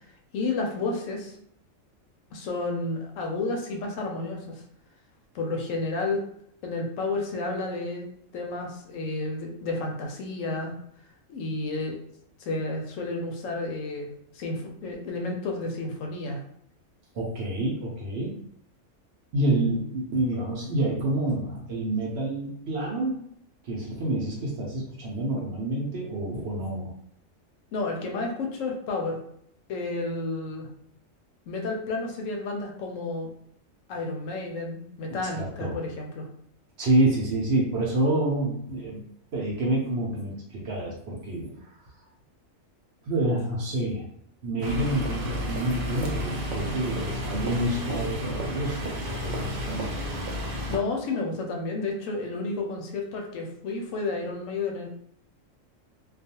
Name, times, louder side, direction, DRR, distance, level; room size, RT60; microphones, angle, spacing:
voice 1, 0.3-1.3 2.3-4.6 5.3-6.2 6.6-8.1 8.3-10.7 11.3-12.0 12.4-16.4 27.7-29.2 29.7-30.7 31.5-33.3 33.9-36.3 50.7-54.9, left 3 dB, 75° left, 2 dB, 0.9 m, -31 dB
voice 2, 17.1-18.4 19.3-23.2 23.6-26.9 35.1-35.8 36.8-39.0 39.3-41.7 43.0-44.0 44.4-49.9, right 1 dB, 60° right, -2 dB, 0.8 m, -28 dB
sound 1, 44.6-50.8, equal, 75° right, 0.4 m, -31 dB
2.3 x 2.3 x 2.7 m, 0.68 s
omnidirectional pair, 1.4 m